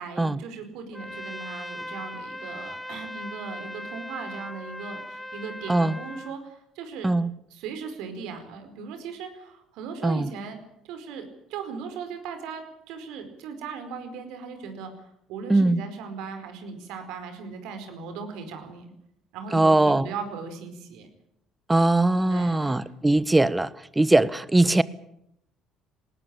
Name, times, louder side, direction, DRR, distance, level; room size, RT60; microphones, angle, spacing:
voice 1, 0.0-7.1 7.5-10.6 10.8-18.8 19.3-21.1 22.3-22.9, right 5 dB, 70° right, 4.7 m, -38 dB
Trumpet, 0.9-6.3, left 1 dB, 5° left, 1.7 m, -38 dB
voice 2, 15.5-15.8 19.5-20.1 21.7-24.8, right 2 dB, 15° right, 1.3 m, -21 dB
19.5 x 19.5 x 8.9 m
hypercardioid pair, 60°, 0 cm